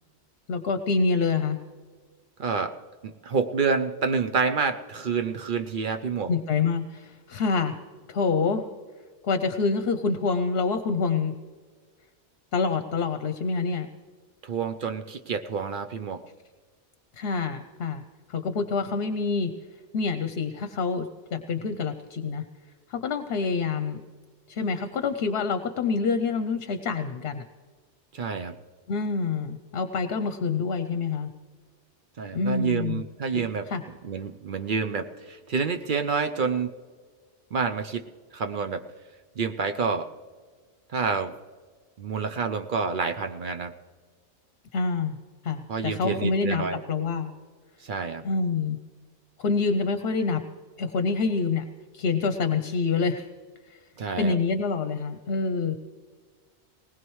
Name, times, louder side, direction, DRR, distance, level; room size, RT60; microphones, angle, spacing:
voice 1, 0.5-1.6 6.3-7.8 8.1-8.6 9.2-11.4 12.5-13.9 17.2-18.0 18.3-19.5 19.9-22.4 22.9-24.0 24.5-27.4 28.9-31.3 32.3-33.0 33.3-33.8 44.7-45.2 45.4-47.3 48.2-48.8 49.4-50.4 50.8-51.6 51.9-53.3 54.2-55.8, left 4 dB, 65° left, 9 dB, 0.9 m, -26 dB
voice 2, 2.4-2.8 3.0-6.3 14.4-16.2 28.1-28.6 32.2-33.7 34.0-36.7 37.5-38.1 38.3-38.8 39.4-40.1 40.9-41.3 42.0-43.7 45.7-46.8 47.8-48.2 54.0-54.4, right 5 dB, 55° right, 7 dB, 0.7 m, -28 dB
19.5 x 19.5 x 3.1 m, 1.5 s
omnidirectional pair, 1.2 m